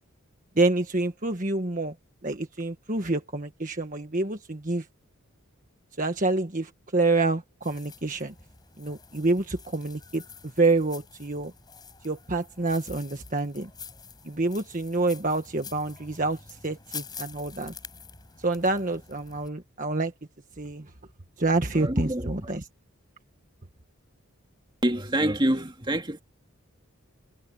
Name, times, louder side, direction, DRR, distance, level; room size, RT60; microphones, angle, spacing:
voice 1, 0.5-1.9 2.2-4.8 6.0-8.3 8.8-11.5 12.0-13.7 14.2-17.7 18.4-20.1 20.6-20.9 21.4-22.7, right 2 dB, 40° right, 1.5 m, -27 dB
sound 1, 7.6-19.5, left 6 dB, 20° left, 7.3 m, -46 dB
voice 2, 21.8-22.3 24.8-26.2, right 1 dB, 20° right, 2.1 m, -26 dB
head